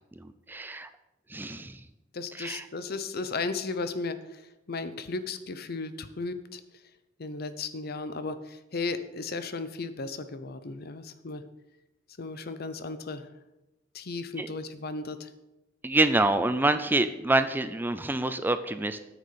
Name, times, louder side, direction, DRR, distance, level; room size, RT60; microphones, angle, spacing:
voice 1, 0.2-0.9 1.3-1.8 2.4-2.6 14.4-14.5 15.8-19.0, right 2 dB, 10° right, 10 dB, 0.4 m, -26 dB
voice 2, 2.1-6.6 7.2-11.4 12.2-13.3 13.9-15.3, left 3 dB, 50° left, 11 dB, 0.7 m, -35 dB
9.1 x 6.6 x 6.8 m, 0.99 s
head